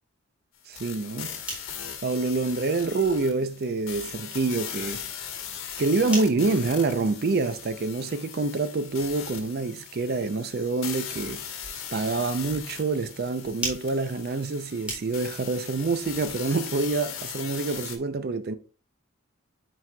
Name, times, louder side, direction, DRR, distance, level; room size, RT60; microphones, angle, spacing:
sound 1, 0.7-18.0, left 8 dB, 75° left, 1.2 m, -39 dB
voice 1, 0.7-1.4 2.0-5.1 5.8-11.4 11.9-18.6, right 3 dB, 45° right, 0.4 m, -27 dB
sound 2, 1.1-15.5, right 1 dB, 5° right, 2.2 m, -43 dB
9.4 x 4.7 x 2.2 m
head